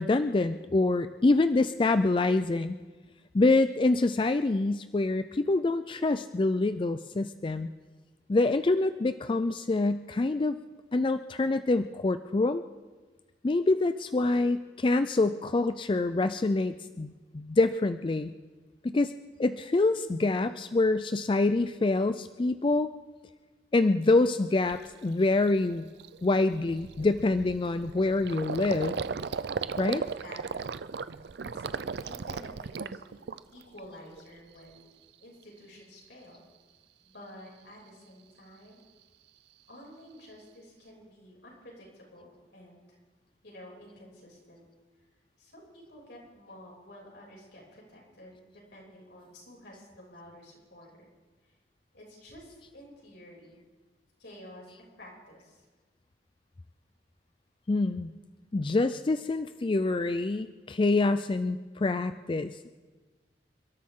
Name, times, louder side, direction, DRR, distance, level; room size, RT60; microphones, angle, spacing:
voice 1, 0.0-2.8 3.3-7.7 8.3-10.6 10.9-12.6 13.4-18.3 18.8-19.1 19.4-22.9 23.7-25.8 26.2-29.0 29.8-30.0 57.7-58.1 58.5-62.7, left 2 dB, 30° left, 11 dB, 0.4 m, -26 dB
Gurgling, 24.1-24.2 24.7-24.9 25.3-25.5 25.7-33.8 34.1-34.8, right 5 dB, 65° right, 0.5 m, -36 dB
voice 2, 29.9-30.7 31.4-34.9 35.2-36.4 37.0-38.8 39.7-43.0 43.4-44.6 45.4-51.1 51.4-51.5 51.9-53.6 54.2-55.6, equal, 75° left, -4 dB, 6.7 m, -51 dB
29.0 x 13.0 x 3.8 m, 1.3 s
head